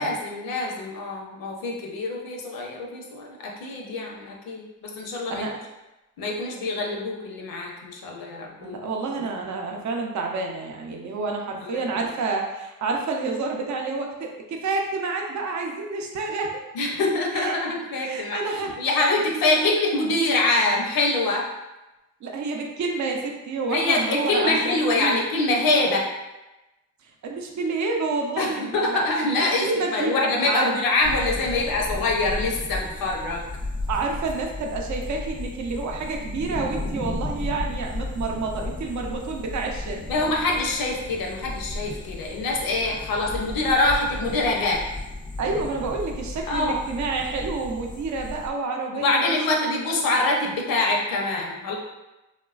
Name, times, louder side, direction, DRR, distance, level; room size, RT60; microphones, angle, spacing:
voice 1, 0.0-5.4 6.2-8.8 9.4-9.5 11.6-11.9 16.7-21.5 23.7-26.1 28.4-33.5 40.1-44.8 46.5-46.8 48.9-51.8, left 2 dB, 85° left, 0 dB, 0.6 m, -25 dB
voice 2, 8.6-16.6 17.3-17.6 18.0-18.8 22.2-25.2 27.0-29.0 29.4-30.1 30.4-30.7 33.9-40.0 45.4-49.4, right 3 dB, 55° right, 1 dB, 0.5 m, -29 dB
sound 1, 31.0-48.5, left 2 dB, 15° left, 0.3 m, -34 dB
3.0 x 2.1 x 2.3 m, 1.0 s
cardioid pair, 55°, 34 cm